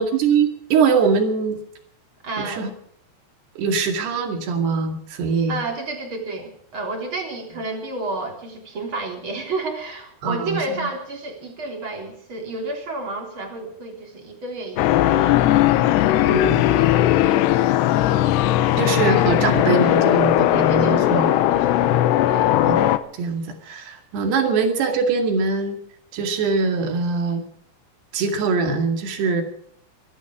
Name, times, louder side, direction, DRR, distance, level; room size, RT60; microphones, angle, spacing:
voice 1, 0.0-1.6 2.4-2.7 3.6-5.6 10.2-10.6 16.3-16.7 18.8-21.3 22.7-22.8 23.2-25.8 26.1-27.4 28.1-29.4, right 5 dB, 80° right, 5 dB, 4.3 m, -22 dB
voice 2, 2.2-2.7 5.5-17.5 20.5-22.6 24.4-24.5, right 2 dB, 30° right, 2 dB, 3.9 m, -31 dB
sound 1, 14.8-23.0, left 13 dB, 90° left, 3.0 m, -18 dB
24.0 x 12.0 x 4.9 m, 0.64 s
omnidirectional pair, 4.7 m